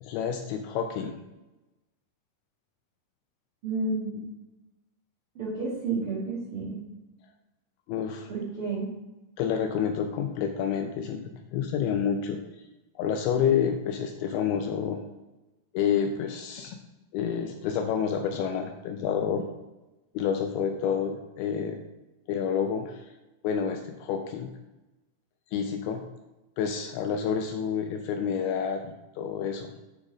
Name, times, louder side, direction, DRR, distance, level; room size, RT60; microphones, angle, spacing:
voice 1, 0.0-1.2 7.9-8.3 9.4-12.6 13.0-15.0 15.7-16.8 17.1-19.4 20.1-21.8 22.3-23.1 23.4-24.5 25.5-26.0 26.6-29.7, left 7 dB, 80° left, 5 dB, 2.3 m, -29 dB
voice 2, 3.6-4.2 5.3-6.8 8.3-8.9, right 3 dB, 55° right, -7 dB, 1.5 m, -31 dB
8.9 x 3.9 x 4.8 m, 1.0 s
omnidirectional pair, 4.8 m